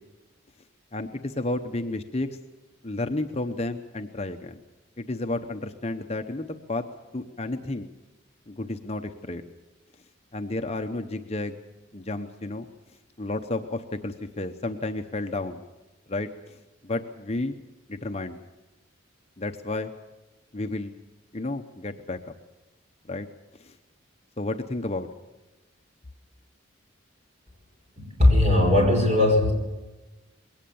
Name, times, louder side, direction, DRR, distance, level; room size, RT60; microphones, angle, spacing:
voice 1, 0.9-2.4 2.8-4.6 5.0-6.9 7.1-7.9 8.5-9.4 10.3-11.6 11.9-12.7 13.2-15.6 16.1-16.6 16.8-17.6 17.9-18.4 19.4-19.9 20.5-20.9 21.3-22.2 23.1-23.3 23.6-23.8 24.4-25.1, left 2 dB, 30° left, 6 dB, 0.8 m, -31 dB
voice 2, 28.0-29.5, left 1 dB, 30° right, 1 dB, 5.6 m, -19 dB
21.5 x 18.0 x 7.0 m, 1.1 s
head